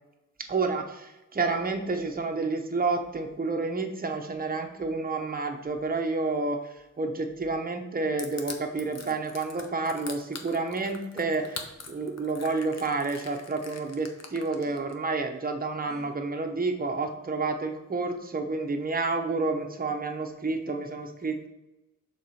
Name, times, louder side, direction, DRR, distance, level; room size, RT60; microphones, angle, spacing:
voice 1, 0.5-21.5, right 3 dB, 30° right, 4 dB, 0.7 m, -30 dB
Crushing, 8.2-14.9, left 5 dB, 60° left, 0.8 m, -42 dB
sound 1, 8.7-9.2 11.3-12.0 12.7-12.8 14.6-14.8 15.8-16.1, equal, ahead, 1.4 m, -52 dB
6.5 x 3.8 x 4.2 m, 0.96 s
wide cardioid pair, 135°, 30 cm